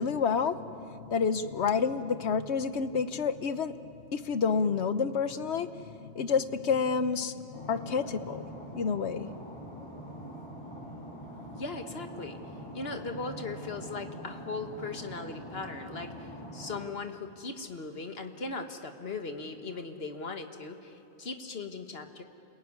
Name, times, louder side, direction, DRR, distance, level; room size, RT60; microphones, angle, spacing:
voice 1, 0.0-9.3, left 5 dB, 75° left, 12 dB, 1.2 m, -29 dB
sound 1, 7.5-16.9, equal, 25° left, 7.1 m, -44 dB
voice 2, 11.5-12.4 12.7-22.2, left 3 dB, 60° left, 6 dB, 1.7 m, -39 dB
28.5 x 21.5 x 9.6 m, 2.8 s
omnidirectional pair, 1.1 m